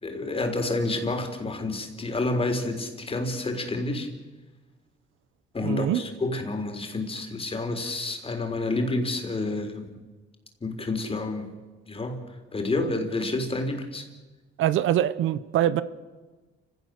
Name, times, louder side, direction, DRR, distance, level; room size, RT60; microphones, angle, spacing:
voice 1, 0.0-4.1 5.5-10.0 10.6-11.5 11.9-12.2 12.5-14.0, left 2 dB, 30° left, 6 dB, 3.8 m, -29 dB
voice 2, 5.6-6.0 14.6-15.8, right 11 dB, 80° right, 15 dB, 0.9 m, -23 dB
29.0 x 16.5 x 6.6 m, 1.3 s
cardioid pair, 90°, 20 cm